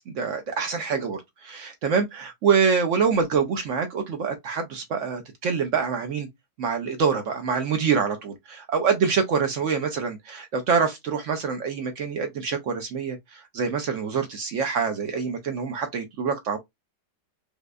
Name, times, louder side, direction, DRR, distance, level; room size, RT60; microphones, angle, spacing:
voice 1, 0.0-6.3 6.6-16.6, right 6 dB, 65° right, 0.7 m, -25 dB
5.1 x 2.1 x 2.3 m
omnidirectional pair, 1.8 m